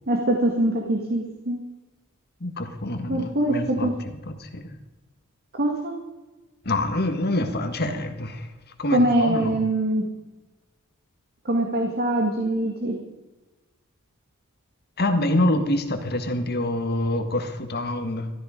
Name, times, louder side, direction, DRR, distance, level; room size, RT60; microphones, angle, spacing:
voice 1, 0.1-1.6 3.1-3.9 5.6-5.9 8.9-10.0 11.5-13.0, right 1 dB, 45° right, 1 dB, 1.8 m, -23 dB
voice 2, 2.4-3.9 4.3-4.8 6.6-8.5 8.8-9.5 15.0-18.3, left 1 dB, 50° left, 6 dB, 1.6 m, -26 dB
13.5 x 13.5 x 5.1 m, 1.2 s
head